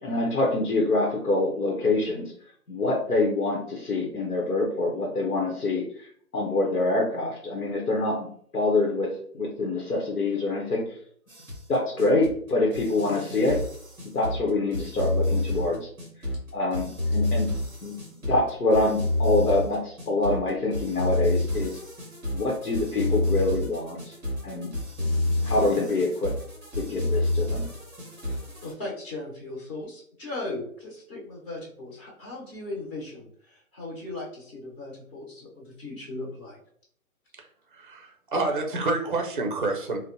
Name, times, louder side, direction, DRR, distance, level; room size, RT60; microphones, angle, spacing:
voice 1, 0.0-2.3 2.7-6.1 6.3-8.3 8.5-11.0 11.7-13.6 14.0-15.9 16.5-17.6 17.8-18.0 18.2-21.8 22.3-24.1 24.4-24.7 25.4-26.3 26.8-27.7, left 2 dB, 85° left, -1 dB, 0.9 m, -25 dB
sound 1, 11.3-28.7, left 2 dB, 5° right, 0.8 m, -29 dB
voice 2, 28.2-36.6, left 2 dB, 40° left, -4 dB, 1.4 m, -38 dB
voice 3, 37.3-40.0, right 3 dB, 35° right, 4 dB, 0.5 m, -28 dB
3.7 x 2.1 x 2.6 m, 0.63 s
figure-of-eight pair, 145°, 44 cm